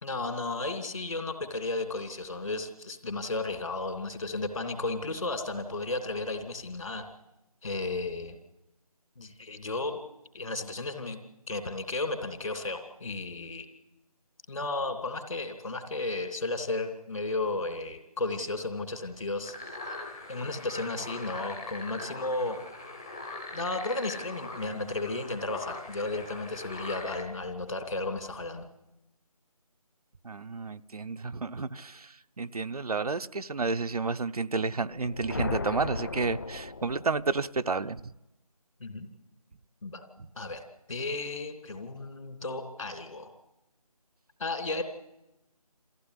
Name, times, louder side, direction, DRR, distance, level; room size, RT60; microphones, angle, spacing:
voice 1, 0.0-7.0 7.6-8.4 9.2-10.0 10.3-11.2 11.5-13.7 14.5-19.7 20.3-22.6 23.5-28.7 38.8-39.1 39.8-40.0 40.4-40.6 40.9-43.4 44.4-44.8, left 2 dB, 60° left, 6 dB, 3.1 m, -34 dB
sound 1, 19.4-27.2, left 2 dB, 10° left, 0.8 m, -42 dB
voice 2, 30.2-38.0, right 4 dB, 75° right, 11 dB, 0.7 m, -31 dB
sound 2, 34.9-37.5, left 3 dB, 35° left, 0.9 m, -36 dB
24.0 x 15.5 x 9.9 m, 0.96 s
figure-of-eight pair, 170°, 19 cm